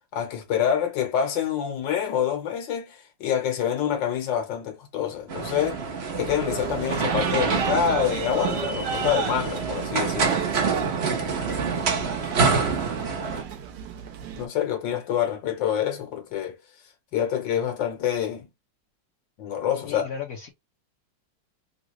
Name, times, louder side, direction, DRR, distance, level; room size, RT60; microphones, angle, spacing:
voice 1, 0.1-5.8 6.1-10.4 14.4-16.6 17.1-18.5 19.4-20.0, left 9 dB, 85° left, 1.8 m, -26 dB
sound 1, 5.3-13.4, right 5 dB, 50° right, 0.8 m, -26 dB
sound 2, 6.2-14.5, right 7 dB, 70° right, 1.2 m, -35 dB
voice 2, 19.8-20.5, left 7 dB, 55° left, 1.1 m, -35 dB
3.8 x 2.4 x 3.0 m
omnidirectional pair, 1.9 m